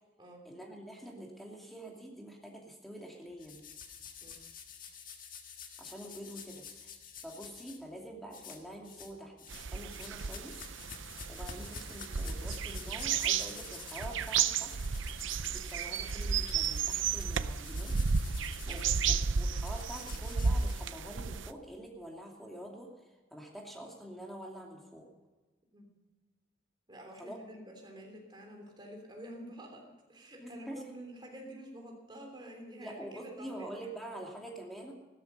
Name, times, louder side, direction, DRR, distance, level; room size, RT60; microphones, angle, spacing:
voice 1, 0.4-3.6 5.8-6.9 7.2-10.6 11.3-14.8 15.5-18.0 18.6-18.9 19.4-25.1 27.2-27.4 30.4-30.8 32.8-34.9, right 1 dB, ahead, 0 dB, 2.6 m, -46 dB
sound 1, 3.4-7.8 8.3-9.1 9.4-21.3, left 6 dB, 45° left, 1.8 m, -49 dB
sound 2, 9.5-21.5, right 6 dB, 75° right, 0.6 m, -33 dB
voice 2, 18.7-19.0 25.7-25.9 26.9-34.3, right 1 dB, 25° right, 1 dB, 3.2 m, -49 dB
15.5 x 13.5 x 5.5 m, 1.2 s
head